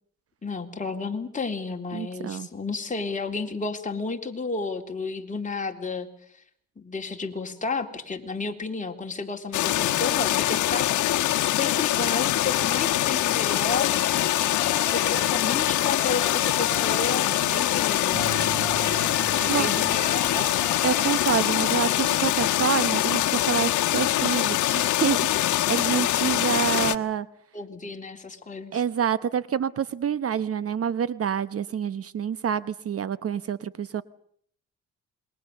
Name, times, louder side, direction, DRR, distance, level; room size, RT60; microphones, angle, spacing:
voice 1, 0.4-6.1 6.8-10.9 11.4-14.4 14.7-18.3 19.3-20.5 27.5-28.8, left 4 dB, 25° left, 3 dB, 3.7 m, -32 dB
voice 2, 1.9-2.5 19.5-19.7 20.8-27.3 28.7-34.0, right 8 dB, 50° right, 16 dB, 1.0 m, -27 dB
sound 1, 9.5-27.0, left 14 dB, 80° left, 1.3 m, -24 dB
sound 2, 14.0-21.4, left 3 dB, 5° left, 3.4 m, -37 dB
Bass guitar, 18.1-21.8, right 5 dB, 75° right, 7.0 m, -40 dB
27.5 x 22.0 x 6.7 m, 0.65 s
cardioid pair, 90°, 30 cm